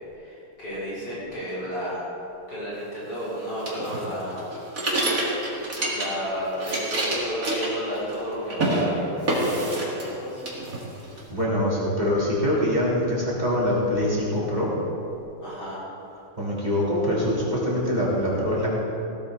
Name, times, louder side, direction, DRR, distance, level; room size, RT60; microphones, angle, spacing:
voice 1, 0.1-2.0 2.5-4.5 5.9-10.4 15.4-15.8, equal, 50° left, -9 dB, 4.3 m, -32 dB
sound 1, 3.6-6.3 6.5-8.2 8.5-8.8 9.3-10.2 10.4-11.2, right 1 dB, 40° right, 2.6 m, -27 dB
voice 2, 11.3-14.7 16.4-18.7, left 1 dB, 20° right, -7 dB, 3.3 m, -24 dB
16.5 x 12.5 x 4.0 m, 2.8 s
omnidirectional pair, 2.4 m